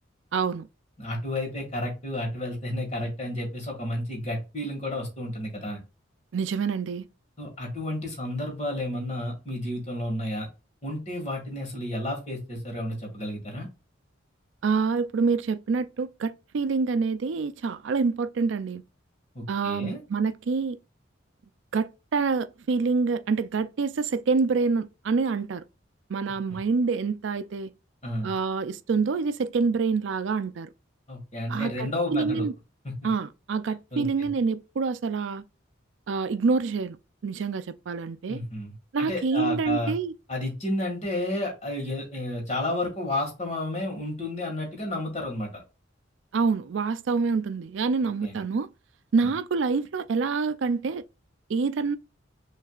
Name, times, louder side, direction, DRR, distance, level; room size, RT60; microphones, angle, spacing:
voice 1, 0.3-0.7 6.3-7.0 14.6-18.8 19.5-20.8 21.7-25.6 26.1-27.7 28.2-30.7 31.5-32.5 33.0-35.4 36.1-37.0 37.2-38.4 38.9-40.1 46.3-48.7 49.1-51.0 51.5-52.0, right 4 dB, 70° right, 0.4 m, -26 dB
voice 2, 1.0-5.8 7.4-10.5 10.8-13.7 19.4-20.0 28.0-28.3 31.1-32.5 32.8-32.9 33.9-34.3 38.3-39.9 40.3-45.6 48.2-48.4, left 1 dB, 35° left, 1.9 m, -31 dB
6.3 x 3.3 x 2.4 m
head